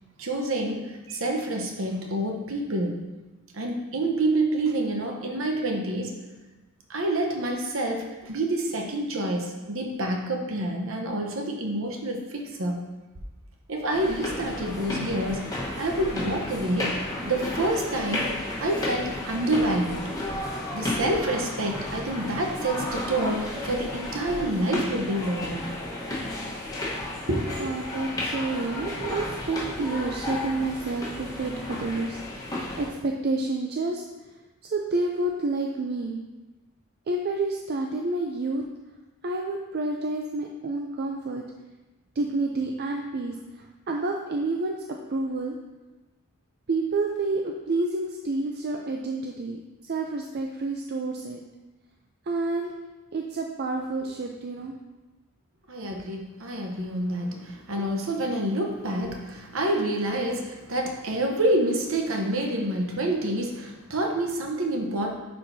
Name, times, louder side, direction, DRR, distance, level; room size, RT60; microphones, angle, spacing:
voice 1, 0.2-3.0 3.5-6.2 6.9-12.8 13.7-15.5 15.8-17.0 17.3-18.3 18.6-20.1 20.7-25.6 27.3-27.7 55.7-65.1, right 1 dB, 60° right, 2 dB, 0.9 m, -28 dB
sound 1, 13.9-32.9, left 1 dB, 15° left, 1.2 m, -33 dB
voice 2, 27.6-34.0 34.6-36.2 37.1-38.6 39.2-41.4 42.2-44.8 45.1-45.6 46.7-51.4 52.3-52.7 53.1-54.7, right 2 dB, 45° right, 1 dB, 0.4 m, -29 dB
9.6 x 4.5 x 2.7 m, 1.1 s
head